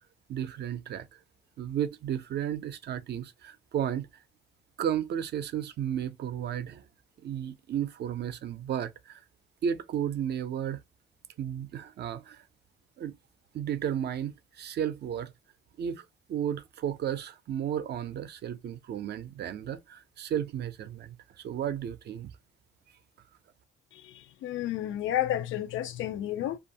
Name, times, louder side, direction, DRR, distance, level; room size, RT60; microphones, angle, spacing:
voice 1, 0.3-1.2 1.6-4.1 4.8-6.8 7.2-9.2 9.6-10.8 11.4-12.4 13.0-13.2 13.5-15.3 15.8-21.2 21.4-22.3, right 9 dB, 55° right, 0.5 m, -33 dB
voice 2, 24.4-26.6, left 12 dB, 80° left, 0.4 m, -31 dB
2.6 x 2.4 x 2.7 m
cardioid pair, 90°, 20 cm